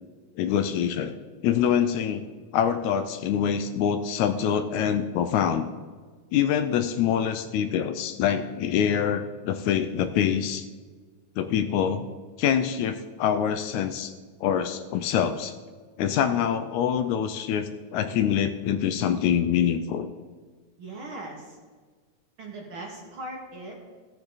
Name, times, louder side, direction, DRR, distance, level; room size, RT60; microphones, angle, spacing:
voice 1, 0.4-1.2 1.4-2.2 2.5-5.7 6.3-10.7 11.4-12.0 12.4-14.1 14.4-15.5 16.0-20.1, left 8 dB, 80° left, 10 dB, 1.8 m, -25 dB
voice 2, 20.8-21.6 22.4-23.7, right 2 dB, 50° right, -1 dB, 2.0 m, -39 dB
16.0 x 6.8 x 4.0 m, 1.5 s
omnidirectional pair, 3.5 m